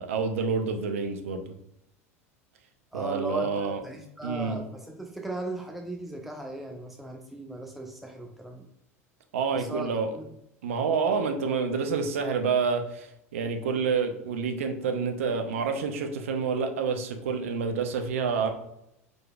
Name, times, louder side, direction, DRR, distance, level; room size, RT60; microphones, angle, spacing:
voice 1, 0.0-1.6 2.9-3.8 4.2-4.6 9.3-10.1 10.6-18.5, right 5 dB, 60° right, 6 dB, 0.6 m, -28 dB
voice 2, 2.9-8.7 9.5-9.9 10.1-10.2, right 1 dB, ahead, 2 dB, 0.4 m, -37 dB
4.8 x 3.9 x 2.3 m, 0.80 s
figure-of-eight pair, 80°, 8 cm